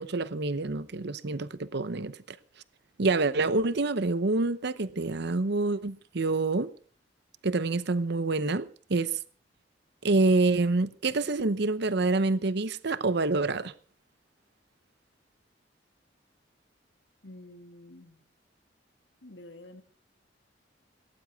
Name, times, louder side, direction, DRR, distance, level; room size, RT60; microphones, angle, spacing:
voice 1, 0.0-2.4 3.0-6.7 7.4-9.2 10.0-13.7, right 3 dB, 65° right, 0.8 m, -27 dB
voice 2, 17.2-18.2 19.2-19.8, left 1 dB, 70° left, 2.3 m, -48 dB
17.5 x 17.5 x 3.6 m
head